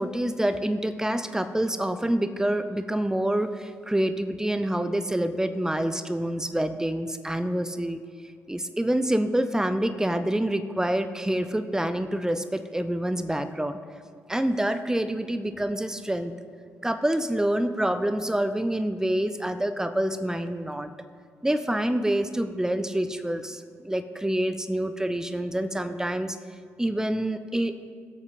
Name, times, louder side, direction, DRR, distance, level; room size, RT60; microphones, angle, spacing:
voice 1, 0.0-8.0 8.5-13.8 14.3-16.3 16.8-20.9 21.4-26.4 26.8-27.8, right 1 dB, 10° right, 10 dB, 0.7 m, -27 dB
23.0 x 8.1 x 2.7 m, 2.1 s
figure-of-eight pair, 40°, 8 cm